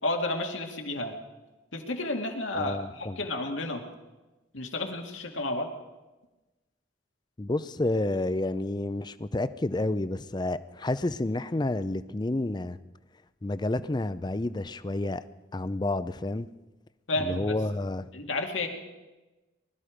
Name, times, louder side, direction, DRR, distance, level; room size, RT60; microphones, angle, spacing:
voice 1, 0.0-1.2 1.7-3.8 4.5-5.7 17.1-17.6 18.1-18.7, left 2 dB, 80° left, 2 dB, 2.2 m, -31 dB
voice 2, 2.5-3.2 7.4-12.8 13.4-15.2 15.5-16.5 17.2-18.1, left 2 dB, 20° left, 14 dB, 0.5 m, -30 dB
20.5 x 13.0 x 5.1 m, 1.1 s
head